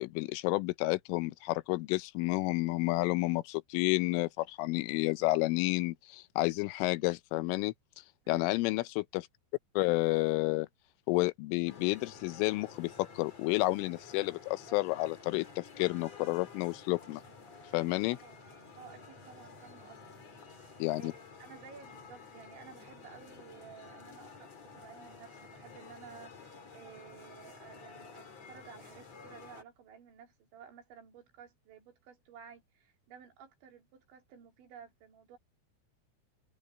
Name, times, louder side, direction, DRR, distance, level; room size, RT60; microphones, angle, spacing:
voice 1, 0.0-7.7 8.3-9.3 9.8-10.7 11.1-17.2 17.7-18.2 20.8-21.1, left 20 dB, 90° left, 3.3 m, -30 dB
sound 1, 11.7-29.6, left 5 dB, 35° left, 4.5 m, -52 dB
voice 2, 17.7-18.4 18.8-20.2 20.6-35.4, right 7 dB, 70° right, 5.8 m, -54 dB
omnidirectional pair, 5.6 m